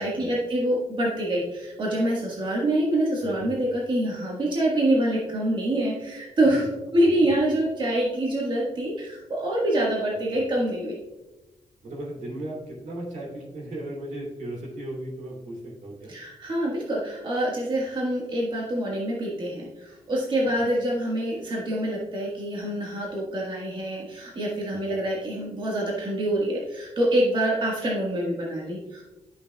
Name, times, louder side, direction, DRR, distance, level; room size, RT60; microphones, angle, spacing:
voice 1, 0.0-6.7 6.9-10.9 16.1-29.0, right 1 dB, 40° right, -4 dB, 1.5 m, -26 dB
voice 2, 11.8-16.1 24.7-25.0, right 1 dB, 80° right, -2 dB, 2.6 m, -36 dB
11.0 x 6.5 x 2.3 m, 1.0 s
wide cardioid pair, 170°, 13 cm